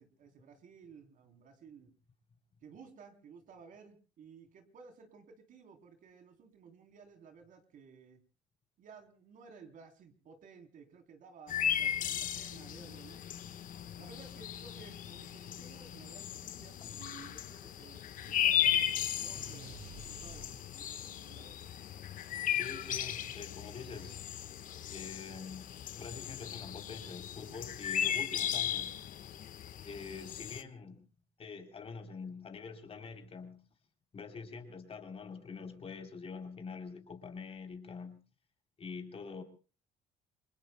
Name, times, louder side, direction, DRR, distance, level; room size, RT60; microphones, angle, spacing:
voice 1, 0.0-1.9 2.6-8.2 8.8-13.2 14.0-18.0 18.4-18.9 19.2-21.6, right 5 dB, 60° right, 3.4 m, -55 dB
sound 1, 11.5-30.6, left 10 dB, 60° left, 1.3 m, -36 dB
sound 2, 19.3-21.1, right 8 dB, 80° right, 2.1 m, -52 dB
voice 2, 22.5-24.2 24.9-29.0 29.8-31.0 31.4-33.6 34.1-38.2 38.8-39.4, left 5 dB, 40° left, 3.4 m, -45 dB
28.5 x 22.0 x 2.2 m
supercardioid pair, 85°, 16 cm